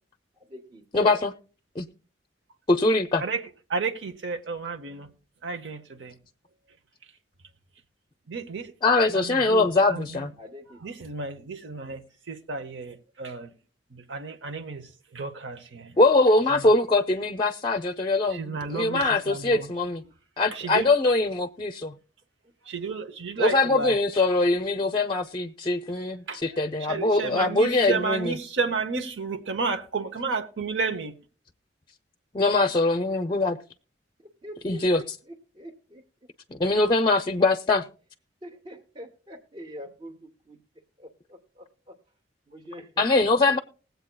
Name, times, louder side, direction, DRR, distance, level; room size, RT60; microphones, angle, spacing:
voice 1, 0.4-1.2 10.4-10.8 34.2-36.0 38.4-40.6 41.0-41.9 42.5-43.0, equal, 30° right, 0.8 m, -44 dB
voice 2, 0.9-1.3 1.8-1.9 2.7-3.2 8.8-10.3 16.0-20.0 20.4-21.9 23.4-28.4 32.3-33.6 34.6-35.0 36.5-37.8 43.0-43.6, left 2 dB, 25° left, 0.5 m, -22 dB
voice 3, 3.7-5.1 5.4-6.1 8.3-8.7 9.1-10.1 10.8-13.5 13.9-14.9 15.1-15.9 16.5-16.7 18.3-19.7 20.5-20.9 22.7-24.0 26.3-26.4 26.9-31.2, right 4 dB, 80° right, 0.8 m, -32 dB
20.5 x 8.0 x 2.2 m
head